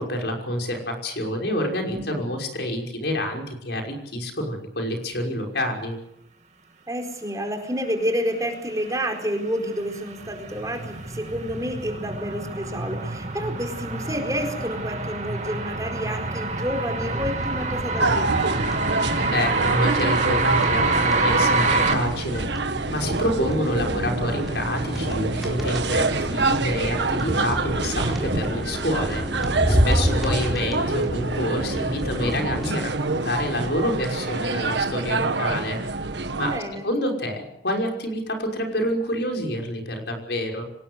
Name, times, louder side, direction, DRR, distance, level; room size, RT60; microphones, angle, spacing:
voice 1, 0.0-6.0 19.3-35.8 36.4-40.6, left 1 dB, 70° left, 2 dB, 5.9 m, -28 dB
voice 2, 6.9-18.6 23.8-24.2 36.4-36.9, equal, 20° right, 3 dB, 4.5 m, -29 dB
sound 1, 9.2-21.9, right 3 dB, 40° right, 2.5 m, -26 dB
sound 2, 17.1-32.7, equal, ahead, 3.9 m, -29 dB
sound 3, 18.0-36.6, right 3 dB, 80° right, 1.6 m, -27 dB
25.5 x 19.5 x 8.1 m, 0.81 s
head